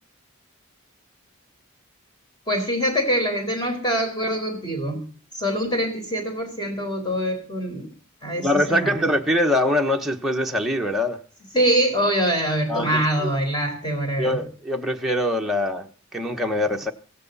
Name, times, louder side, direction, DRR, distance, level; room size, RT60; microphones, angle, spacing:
voice 1, 2.5-5.0 5.3-7.9 8.2-9.1 11.5-14.4, equal, 20° left, 4.7 m, -24 dB
voice 2, 8.4-11.2 12.7-13.3 14.2-16.9, left 1 dB, ahead, 1.1 m, -23 dB
16.5 x 16.5 x 4.1 m
head